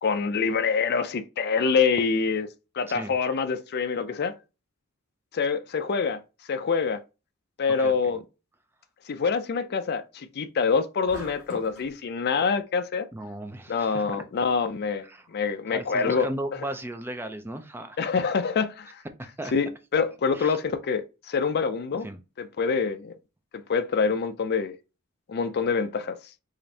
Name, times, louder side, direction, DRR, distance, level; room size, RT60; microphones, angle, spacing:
voice 1, 0.0-2.5 2.7-4.3 5.3-6.2 6.5-7.0 7.6-8.2 9.1-13.1 13.7-16.3 18.0-19.0 19.5-22.1 22.4-23.1 23.5-24.8 25.3-26.2, left 5 dB, 50° left, 0.4 m, -26 dB
voice 2, 7.7-8.1 13.1-14.2 15.0-15.3 15.7-18.0 19.2-19.5 20.3-20.6 22.0-22.2, right 1 dB, 10° right, 0.4 m, -36 dB
sound 1, 11.1-11.9, left 1 dB, 70° left, 2.2 m, -41 dB
4.9 x 2.5 x 2.7 m
head